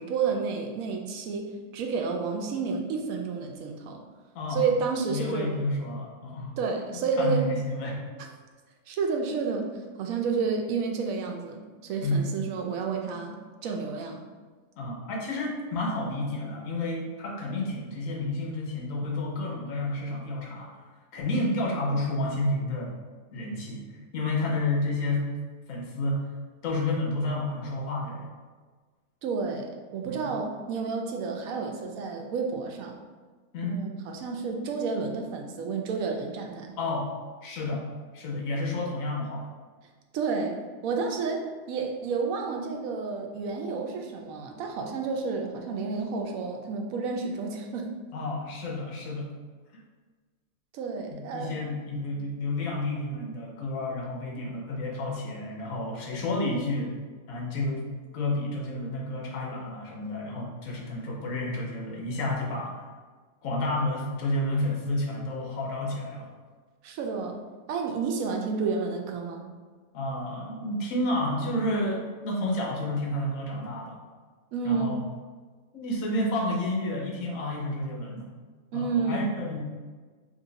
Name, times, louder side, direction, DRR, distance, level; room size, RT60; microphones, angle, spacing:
voice 1, 0.0-4.0 4.5-5.5 6.6-7.5 8.9-9.7 10.0-14.2 29.2-33.0 33.6-36.8 40.1-40.6 40.8-47.9 50.7-51.5 66.8-67.4 67.7-69.4 74.5-75.0 78.7-79.3, right 5 dB, 90° right, 3 dB, 1.0 m, -30 dB
voice 2, 5.1-6.6 7.2-8.1 12.0-12.2 14.8-20.7 21.1-22.9 23.3-25.3 25.7-26.2 26.6-28.3 30.0-30.3 33.5-33.8 36.8-37.1 37.4-37.8 38.1-39.5 48.1-49.3 51.1-56.9 57.3-57.8 58.1-62.8 63.4-66.3 69.9-74.0 74.6-75.0 75.7-78.3 78.7-79.6, left 1 dB, 80° left, -1 dB, 1.1 m, -30 dB
3.0 x 2.6 x 3.9 m, 1.4 s
omnidirectional pair, 1.4 m